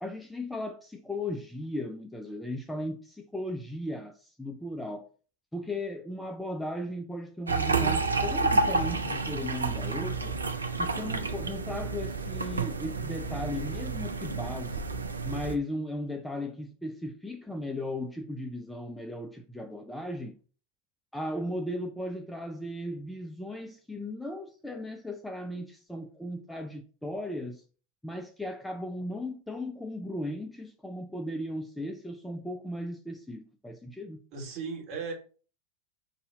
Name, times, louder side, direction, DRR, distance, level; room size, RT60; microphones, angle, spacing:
voice 1, 0.0-5.1 5.5-10.4 10.8-15.0 15.2-20.4 21.1-27.6 28.0-34.2, left 1 dB, 5° left, 0.4 m, -36 dB
sound 1, 7.5-15.6, right 3 dB, 75° right, 0.4 m, -30 dB
voice 2, 34.3-35.1, right 5 dB, 35° right, 1.5 m, -36 dB
5.5 x 2.7 x 3.4 m
figure-of-eight pair, 90°, 0 cm